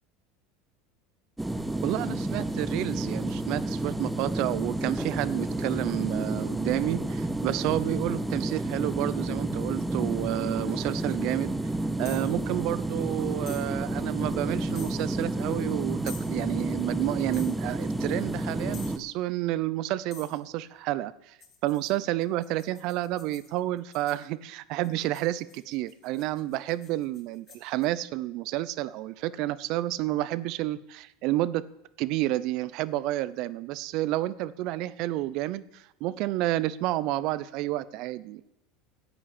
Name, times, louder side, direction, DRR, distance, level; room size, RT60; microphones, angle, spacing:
sound 1, 1.4-19.0, right 2 dB, 5° right, 1.0 m, -30 dB
voice 1, 1.8-11.6 12.0-21.4 21.6-31.6 32.0-38.4, right 16 dB, 60° right, 17 dB, 0.7 m, -30 dB
sound 2, 12.0-12.3 13.5-13.7 14.7-15.0 16.1-16.3 17.3-17.6 18.7-19.0 20.1-20.4 21.4-24.2 24.8-27.9, left 6 dB, 45° left, 3.5 m, -48 dB
11.0 x 8.7 x 8.5 m, 0.85 s
supercardioid pair, 105°, 0 cm